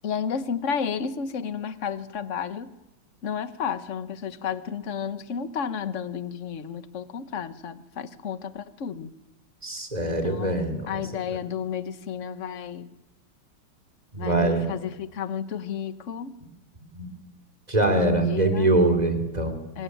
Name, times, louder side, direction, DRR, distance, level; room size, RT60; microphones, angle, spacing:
voice 1, 0.0-2.7 3.2-9.1 10.0-12.9 14.2-16.4 17.9-18.8 19.7-19.8, left 7 dB, 45° left, 12 dB, 1.2 m, -32 dB
voice 2, 9.6-11.0 14.1-14.7 16.9-17.1 17.7-19.6, right 2 dB, 20° right, 7 dB, 3.2 m, -23 dB
24.5 x 19.5 x 9.3 m, 1.0 s
omnidirectional pair, 2.4 m